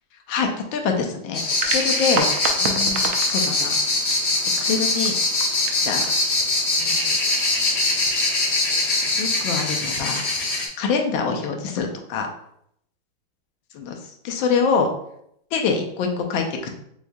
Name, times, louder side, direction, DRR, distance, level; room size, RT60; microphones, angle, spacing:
voice 1, 0.3-2.2 2.6-3.7 4.0-4.2 4.6-5.1 5.8-6.1 6.8-7.1 9.2-10.3 10.8-12.3 13.8-14.0 14.2-14.9 15.5-16.7, left 5 dB, 85° left, 3 dB, 1.4 m, -25 dB
sound 1, 1.3-10.7, left 2 dB, 60° left, 0.7 m, -22 dB
sound 2, 1.4-8.3, right 5 dB, 75° right, 0.8 m, -33 dB
6.3 x 2.6 x 2.3 m, 0.72 s
omnidirectional pair, 2.1 m